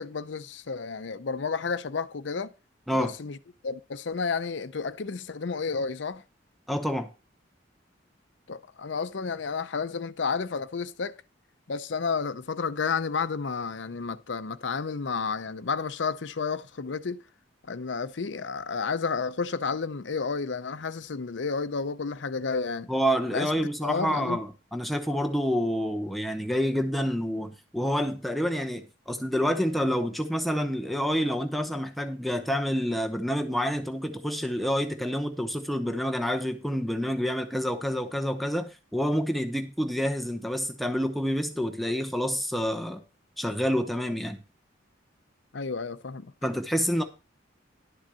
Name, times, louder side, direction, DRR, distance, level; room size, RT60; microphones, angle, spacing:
voice 1, 0.0-2.5 3.0-3.4 3.6-6.2 8.5-11.2 11.7-17.2 17.7-22.9 23.3-23.5 23.8-24.4 45.5-46.3, left 5 dB, 65° left, 0.6 m, -31 dB
voice 2, 6.7-7.1 22.9-43.0 43.4-44.4 46.4-47.0, equal, ahead, 0.8 m, -28 dB
11.5 x 3.9 x 7.4 m
head